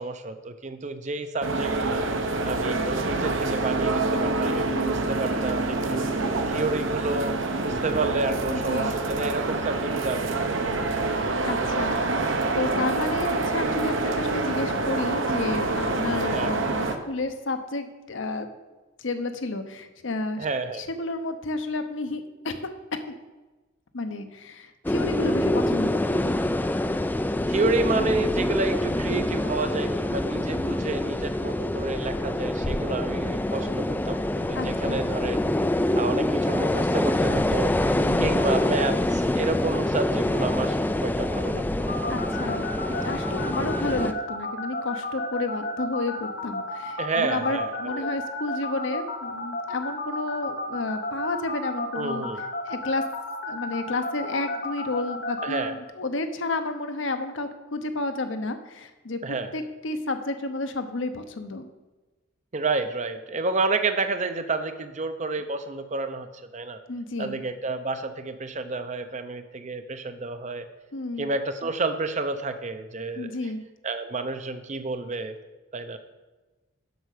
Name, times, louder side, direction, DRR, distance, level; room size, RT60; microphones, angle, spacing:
voice 1, 0.0-2.1 2.4-10.7 11.0-11.1 16.3-16.5 20.4-20.8 25.2-25.5 27.5-35.5 35.9-42.0 43.6-43.9 47.0-48.1 51.9-52.4 55.4-55.8 59.2-59.5 62.5-66.8 67.2-70.7 71.2-73.4 73.8-75.4 75.7-76.0, right 3 dB, 35° right, 9 dB, 0.6 m, -30 dB
sound 1, 1.4-16.9, right 2 dB, 70° right, 0.9 m, -26 dB
voice 2, 4.7-5.0 8.4-8.9 11.4-18.5 19.0-20.5 20.8-22.6 22.9-23.0 23.9-26.3 34.5-35.0 38.0-38.4 42.1-52.3 52.7-53.0 53.4-59.2 59.5-61.7 66.9-67.4 70.9-71.3 73.1-73.6, left 2 dB, 65° left, 8 dB, 0.9 m, -31 dB
sound 2, 24.8-44.1, left 1 dB, 10° left, 0.3 m, -26 dB
sound 3, 41.9-55.6, left 2 dB, 50° left, 1.2 m, -32 dB
7.9 x 6.3 x 6.6 m, 1.2 s
head